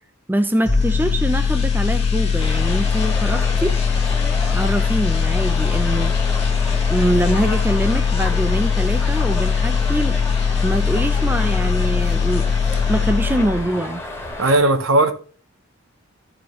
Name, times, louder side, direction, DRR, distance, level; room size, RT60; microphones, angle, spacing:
voice 1, 0.3-3.8 4.5-6.2 6.9-10.2 10.6-12.5 12.9-14.0, right 1 dB, 10° right, 0.5 m, -23 dB
sound 1, 0.6-13.8 14.1-14.3, left 6 dB, 30° left, 1.2 m, -20 dB
sound 2, 2.4-14.6, left 1 dB, 15° left, 1.6 m, -32 dB
voice 2, 14.4-15.1, right 2 dB, 75° right, 0.9 m, -16 dB
14.0 x 4.9 x 3.0 m
head